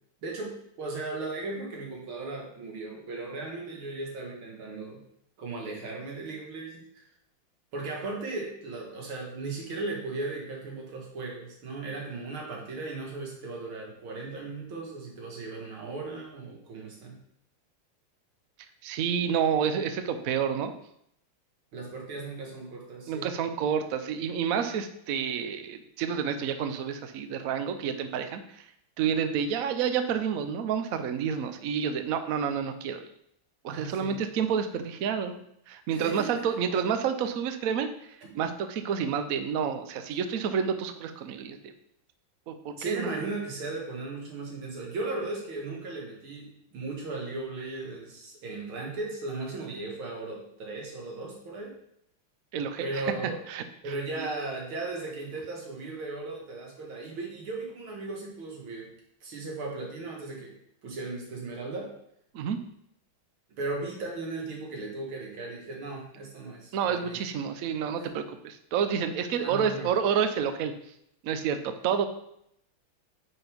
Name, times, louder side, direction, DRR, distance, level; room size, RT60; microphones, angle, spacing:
voice 1, 0.2-5.0 5.4-7.0 7.7-17.2 21.7-23.3 33.7-34.2 35.9-36.3 38.2-38.3 42.8-51.8 52.8-53.4 53.8-58.9 59.2-60.5 60.8-61.9 63.6-67.2 68.0-68.1 69.3-69.9, right 3 dB, 85° right, -1 dB, 2.5 m, -36 dB
voice 2, 18.8-20.7 23.1-28.6 29.0-33.1 33.6-35.4 35.7-37.9 38.3-41.7 42.5-43.1 52.5-53.0 53.5-53.6 54.2-54.3 62.3-62.6 66.7-70.7 71.2-72.1, right 7 dB, 70° right, 8 dB, 0.8 m, -29 dB
9.7 x 4.3 x 3.5 m, 0.73 s
omnidirectional pair, 2.2 m